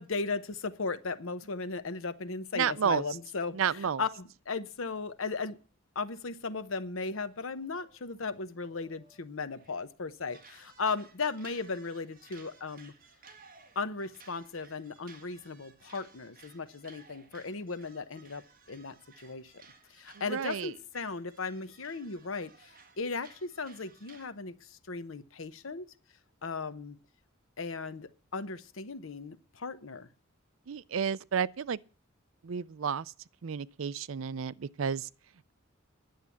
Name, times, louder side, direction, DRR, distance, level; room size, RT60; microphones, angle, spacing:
voice 1, 0.0-5.6 5.9-12.9 13.8-19.6 19.9-25.9 26.4-27.0 27.6-30.1, left 4 dB, 75° left, 0.9 m, -37 dB
voice 2, 2.5-3.0 3.5-4.0 20.3-20.7 30.7-31.8 32.4-33.1 33.4-35.1, right 7 dB, 70° right, 0.5 m, -31 dB
sound 1, 7.2-9.9 10.3-24.3, right 4 dB, 45° right, 1.6 m, -58 dB
10.5 x 7.4 x 8.3 m
head